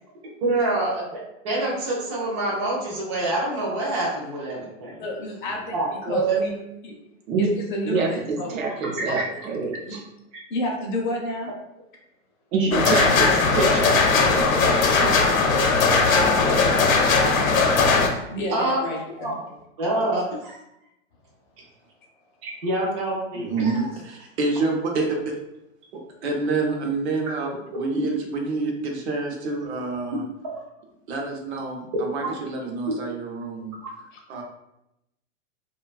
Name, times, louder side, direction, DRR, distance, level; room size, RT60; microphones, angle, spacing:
voice 1, 0.4-5.0 5.7-6.4 9.2-9.3 18.5-18.8 19.2-19.4 19.8-20.6 22.4-23.8, right 2 dB, 25° right, -5 dB, 0.3 m, -26 dB
voice 2, 5.0-5.8 6.0-6.5 6.8-7.0 7.4-8.5 9.1-9.2 9.8-10.0 10.5-11.5 16.0-16.6 18.3-19.3, left 1 dB, 40° left, 0 dB, 0.5 m, -30 dB
voice 3, 7.8-10.0 12.5-15.2, right 4 dB, 85° right, 1 dB, 0.7 m, -27 dB
sound 1, 12.7-18.1, left 4 dB, 80° left, 0.6 m, -19 dB
voice 4, 23.3-25.4 25.9-30.2 31.1-33.7 34.3-34.4, right 3 dB, 55° right, 1 dB, 0.7 m, -28 dB
2.6 x 2.2 x 2.3 m, 0.85 s
hypercardioid pair, 155°, 39 cm